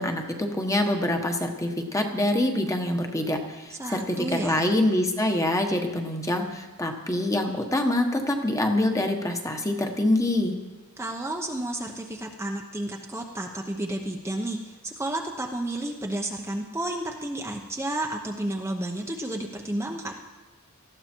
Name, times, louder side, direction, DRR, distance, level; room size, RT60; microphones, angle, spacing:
voice 1, 0.0-4.2 4.4-10.6, left 1 dB, 15° left, 4 dB, 1.4 m, -25 dB
voice 2, 3.7-4.6 11.0-20.1, right 1 dB, 10° right, 1 dB, 0.9 m, -31 dB
19.0 x 14.0 x 4.6 m, 1.2 s
head